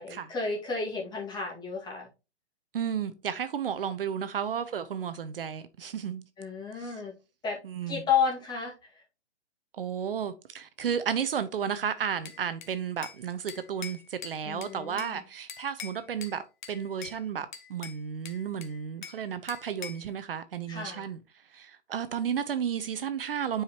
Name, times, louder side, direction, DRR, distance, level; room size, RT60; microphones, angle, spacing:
voice 1, 0.0-2.1 6.4-7.1 7.4-7.6 7.9-9.0 14.4-15.2 20.7-21.1, left 6 dB, 10° left, 2.0 m, -32 dB
voice 2, 2.7-6.2 6.8-6.9 7.6-8.0 9.7-16.4 16.7-21.2 21.5-23.6, right 8 dB, 55° right, 0.7 m, -33 dB
Bell / Glass, 12.3-13.2 13.5-15.2 15.5-16.4 16.6-17.2 17.5-19.2 19.5-20.1, left 7 dB, 45° left, 1.2 m, -43 dB
9.0 x 4.9 x 3.0 m
figure-of-eight pair, 130°, 34 cm